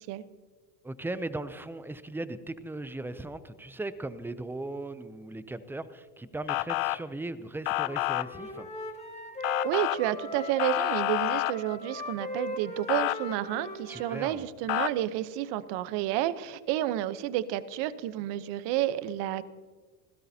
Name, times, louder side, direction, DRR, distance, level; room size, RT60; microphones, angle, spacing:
voice 1, 0.8-8.7 13.9-14.4, right 2 dB, 5° right, 14 dB, 0.4 m, -38 dB
Motor vehicle (road) / Siren, 6.5-7.0 7.7-8.2 9.4-10.0 10.6-11.5 12.9-13.2 14.7-14.9, left 21 dB, 55° left, 0.5 m, -28 dB
Wind instrument woodwind instrument, 7.7-14.3, left 1 dB, 15° left, 2.1 m, -39 dB
voice 2, 9.6-19.4, right 13 dB, 60° right, 15 dB, 0.9 m, -30 dB
26.5 x 16.5 x 2.8 m, 1.5 s
supercardioid pair, 120°, 47 cm